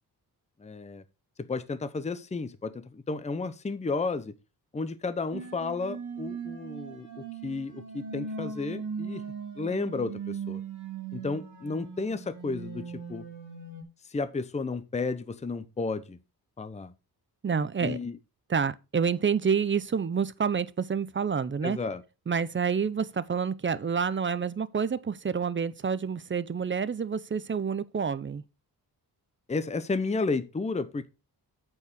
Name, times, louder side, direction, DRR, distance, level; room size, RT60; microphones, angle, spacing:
voice 1, 0.6-1.0 1.4-4.3 4.7-9.2 9.6-10.6 11.1-13.3 14.1-16.2 16.6-16.9 17.8-18.1 21.6-22.0 29.5-31.1, left 3 dB, 15° left, 0.7 m, -32 dB
sound 1, 5.3-13.8, right 5 dB, 55° right, 2.9 m, -39 dB
voice 2, 17.4-18.0 18.5-21.8 22.3-28.4, right 6 dB, 30° right, 0.6 m, -28 dB
8.6 x 4.7 x 6.2 m
wide cardioid pair, 105°, 38 cm